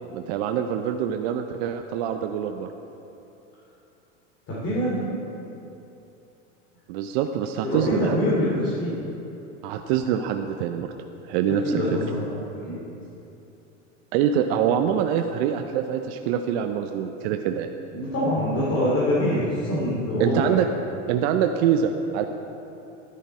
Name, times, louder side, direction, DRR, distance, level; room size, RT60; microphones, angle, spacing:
voice 1, 0.1-2.7 6.9-8.2 9.6-10.9 11.2-11.8 14.1-17.7 20.2-20.7 21.1-22.3, right 9 dB, 55° right, 6 dB, 0.6 m, -25 dB
voice 2, 4.5-5.1 7.6-9.0 11.6-12.2 12.5-12.8 17.9-20.6, left 1 dB, 35° left, -7 dB, 2.8 m, -24 dB
10.5 x 9.9 x 4.3 m, 2.9 s
hypercardioid pair, 110°, 37 cm